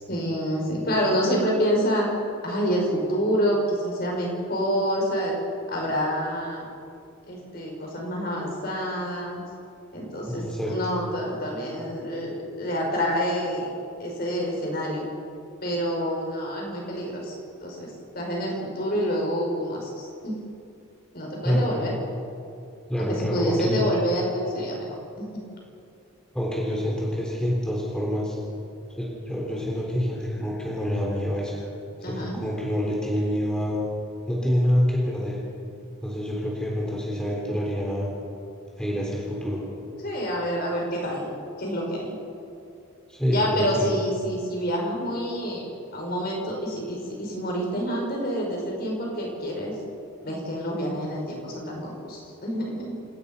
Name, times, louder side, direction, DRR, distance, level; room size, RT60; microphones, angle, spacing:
voice 1, 0.1-2.1 2.4-5.4 5.7-6.7 7.3-9.4 9.9-13.7 14.0-15.0 15.6-17.4 17.6-20.4 21.1-21.9 23.0-24.9 25.2-25.4 32.0-32.4 40.0-41.3 41.6-42.1 43.3-45.6 45.9-49.7 50.2-53.0, equal, 45° left, -1 dB, 6.1 m, -27 dB
voice 2, 10.3-10.8 21.4-21.7 22.9-23.8 26.3-28.4 29.0-31.7 32.1-33.8 34.3-35.4 36.0-38.1 38.8-39.6 43.1-43.9, equal, 5° left, -3 dB, 3.5 m, -26 dB
27.5 x 19.0 x 5.5 m, 2.5 s
head